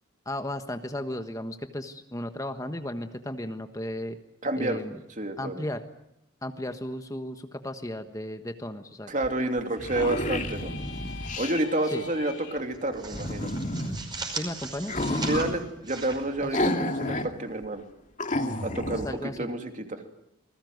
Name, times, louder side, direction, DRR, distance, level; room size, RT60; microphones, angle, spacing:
voice 1, 0.2-4.2 4.6-5.0 5.4-5.8 6.4-9.1 11.9-12.1 14.3-15.2 16.4-16.5 19.0-19.5, left 1 dB, 15° left, 7 dB, 1.3 m, -35 dB
voice 2, 4.4-4.8 5.2-5.6 9.1-10.7 11.4-13.5 15.3-17.8 18.6-20.0, right 2 dB, 40° right, 5 dB, 2.9 m, -29 dB
sound 1, 9.2-9.3 9.6-11.6 13.1-14.0 14.8-15.6 16.5-17.3 17.6-17.7 18.2-19.1, left 1 dB, 40° left, 2.3 m, -30 dB
sound 2, 9.7-12.6, left 6 dB, 65° left, 4.2 m, -44 dB
sound 3, 10.8-11.7 12.0-12.2 12.6-17.0, right 3 dB, 20° right, 5.4 m, -40 dB
28.0 x 20.5 x 9.5 m, 0.83 s
head